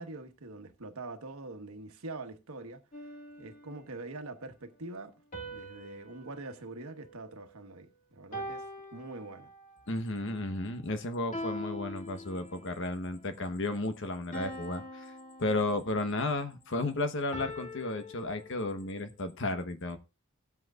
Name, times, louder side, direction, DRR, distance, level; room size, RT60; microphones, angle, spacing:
voice 1, 0.0-2.8 3.4-5.1 5.4-8.6 8.9-9.5, right 2 dB, 85° right, 1.3 m, -44 dB
sound 1, 2.9-4.1 5.3-7.8 8.3-9.8 11.3-12.8 14.3-16.2 17.3-19.0, left 1 dB, 35° left, 1.9 m, -44 dB
voice 2, 9.9-15.1 15.4-20.0, left 2 dB, 60° left, 1.1 m, -33 dB
17.0 x 7.9 x 2.4 m
head